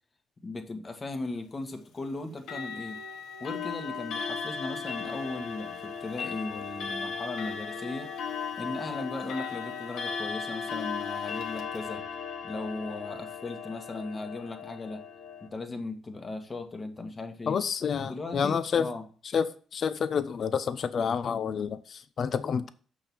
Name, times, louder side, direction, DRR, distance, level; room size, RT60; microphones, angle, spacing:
voice 1, 0.4-3.0 3.4-8.1 8.6-12.0 12.4-15.0 15.4-17.6 18.0-19.1, left 2 dB, 30° left, 1.6 m, -37 dB
Clock, 2.4-15.5, left 6 dB, 80° left, 1.4 m, -36 dB
voice 2, 17.5-18.9 19.3-22.7, left 6 dB, 55° left, 0.7 m, -29 dB
7.0 x 5.6 x 6.1 m
cardioid pair, 90°, 0 cm